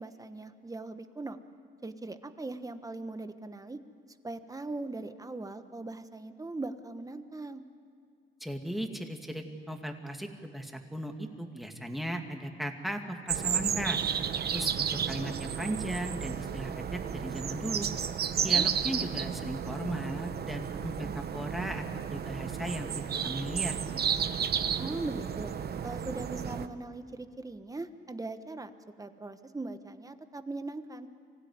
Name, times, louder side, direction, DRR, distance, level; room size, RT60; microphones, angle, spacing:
voice 1, 0.0-1.4 1.8-3.8 4.2-7.6 18.5-18.6 24.8-25.5 25.8-28.7 29.0-31.1, right 2 dB, 15° right, 10 dB, 1.3 m, -40 dB
voice 2, 8.4-14.0 14.5-17.9 18.4-24.0, equal, ahead, 4 dB, 2.3 m, -37 dB
sound 1, 13.3-26.7, right 8 dB, 55° right, 1.0 m, -32 dB
24.5 x 16.0 x 9.6 m, 2.3 s
cardioid pair, 90°, 20 cm